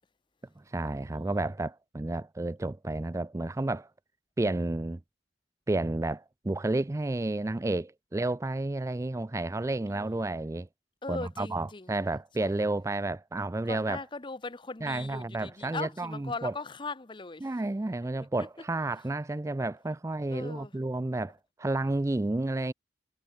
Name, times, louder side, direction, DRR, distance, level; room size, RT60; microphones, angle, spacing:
voice 1, 0.6-3.9 4.4-5.0 5.7-10.7 11.1-14.0 14.8-16.5 17.4-22.7, right 2 dB, 15° right, 0.4 m, -31 dB
voice 2, 9.9-10.4 11.0-12.5 13.7-17.5 18.4-18.5 20.3-20.7, left 3 dB, 25° left, 0.8 m, -40 dB
head